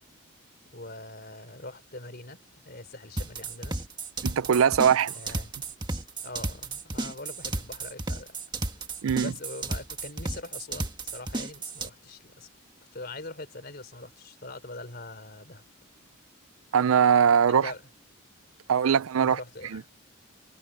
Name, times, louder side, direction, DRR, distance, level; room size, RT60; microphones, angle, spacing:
voice 1, 0.7-2.4 2.7-3.8 5.1-5.5 6.2-8.4 9.2-12.5 12.9-15.6 17.5-17.8 19.2-19.9, left 2 dB, 45° left, 3.9 m, -42 dB
sound 1, 3.2-11.9, right 2 dB, 20° right, 1.6 m, -33 dB
voice 2, 4.2-5.1 9.0-9.3 16.7-17.7 18.7-19.4 19.7-19.8, right 7 dB, 75° right, 0.4 m, -21 dB
head